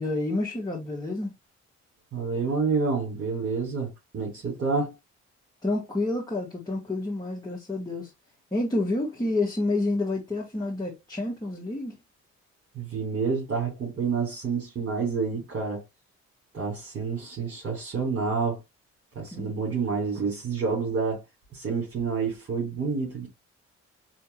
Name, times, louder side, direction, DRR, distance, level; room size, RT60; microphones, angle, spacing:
voice 1, 0.0-1.3 5.6-8.1 8.5-12.0 19.3-19.5, left 2 dB, 15° left, 1.8 m, -29 dB
voice 2, 2.1-4.9 12.7-15.8 16.5-18.6 19.2-21.2 21.5-23.3, right 5 dB, 50° right, 3.6 m, -28 dB
5.6 x 3.3 x 2.9 m
cardioid pair, 90°, 30 cm